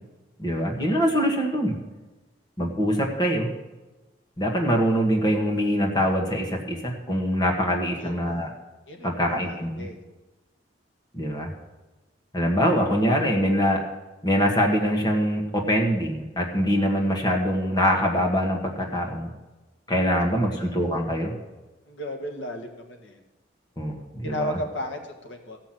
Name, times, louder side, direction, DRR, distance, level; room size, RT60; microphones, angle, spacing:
voice 1, 0.4-1.7 2.6-3.5 4.4-8.5 9.0-9.9 11.1-11.5 12.3-13.8 14.2-19.3 19.9-21.3 23.8-24.6, equal, 20° left, 0 dB, 1.5 m, -24 dB
voice 2, 8.0-8.4 8.9-9.1 9.5-10.0 20.5-20.6 21.9-23.2 24.2-25.6, equal, 80° left, 3 dB, 1.6 m, -34 dB
15.0 x 5.9 x 7.7 m, 1.2 s
head